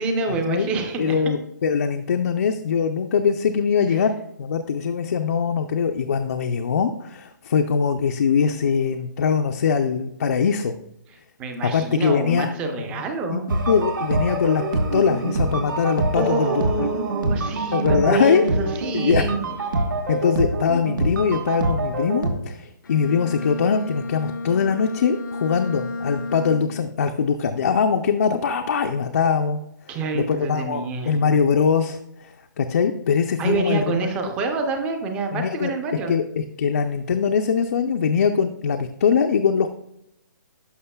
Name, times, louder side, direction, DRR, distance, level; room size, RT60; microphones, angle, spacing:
voice 1, 0.0-1.2 3.9-4.0 11.4-13.5 16.1-19.4 19.7-19.8 29.9-31.1 33.4-36.2, right 3 dB, 10° right, 5 dB, 0.5 m, -27 dB
voice 2, 1.0-10.7 11.6-12.5 12.9-13.0 13.3-13.4 13.7-14.6 14.9-16.9 17.7-18.5 18.9-19.3 20.1-29.6 30.1-34.1 35.3-35.7 36.1-39.7, left 6 dB, 55° left, 5 dB, 0.4 m, -22 dB
sound 1, 13.5-22.3, right 2 dB, 85° right, 1.4 m, -25 dB
Bowed string instrument, 22.8-27.0, left 2 dB, 85° left, 0.8 m, -32 dB
11.0 x 6.1 x 2.2 m, 0.80 s
hypercardioid pair, 170°, 10 cm